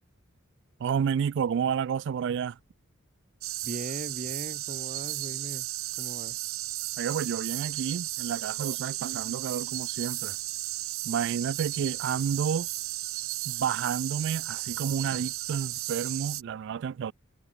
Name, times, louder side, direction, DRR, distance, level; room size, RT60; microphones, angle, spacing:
voice 1, 0.8-2.6 7.0-10.4 11.0-12.7 13.5-17.1, right 7 dB, 60° right, 0.3 m, -30 dB
sound 1, 3.4-16.4, right 17 dB, 90° right, 0.9 m, -34 dB
voice 2, 3.6-5.7 6.0-6.5, right 2 dB, 40° right, 0.7 m, -39 dB
head